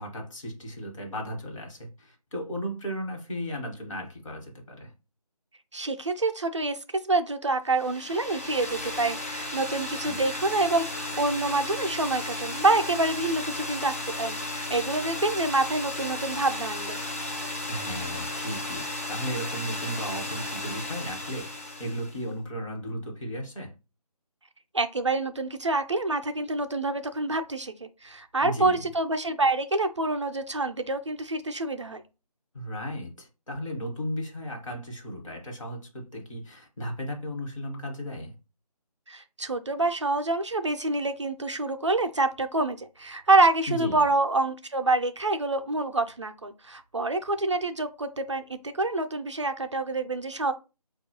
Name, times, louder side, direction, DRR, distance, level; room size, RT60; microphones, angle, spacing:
voice 1, 0.0-4.9 10.0-10.2 17.7-23.7 28.4-28.8 32.5-38.3 43.7-44.1, equal, 50° left, 1.2 m, -35 dB
voice 2, 5.7-6.8 7.0-17.0 24.7-32.0 39.1-50.5, right 2 dB, 50° right, 0.4 m, -27 dB
sound 1, 7.7-22.2, left 1 dB, 20° left, 0.5 m, -34 dB
4.3 x 2.3 x 2.8 m
figure-of-eight pair, 160°, 20 cm